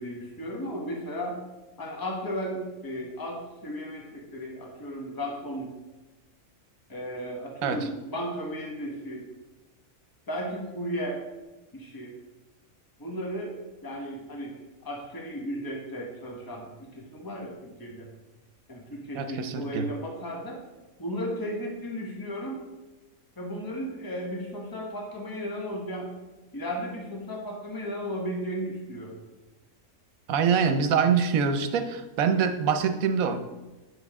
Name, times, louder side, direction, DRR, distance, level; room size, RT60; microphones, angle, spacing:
voice 1, 0.0-1.4 1.8-5.7 6.9-9.3 10.3-11.2 11.7-12.1 13.0-14.5 14.8-18.1 18.7-20.6 21.0-22.6 23.4-26.1 26.5-29.2, equal, 15° left, 0 dB, 1.1 m, -35 dB
voice 2, 19.1-19.9 30.3-33.4, right 6 dB, 80° right, 9 dB, 1.1 m, -24 dB
9.3 x 5.5 x 3.6 m, 1.1 s
omnidirectional pair, 1.5 m